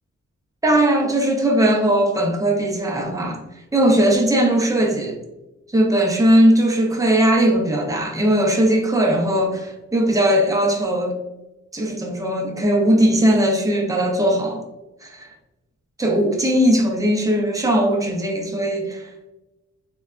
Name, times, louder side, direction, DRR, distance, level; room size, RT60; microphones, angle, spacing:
voice 1, 0.6-3.4 3.7-5.2 5.7-11.2 11.7-14.6 15.0-15.3 16.0-19.3, right 1 dB, 10° right, 0.5 m, -19 dB
3.3 x 2.2 x 2.3 m
cardioid pair, 95°, 29 cm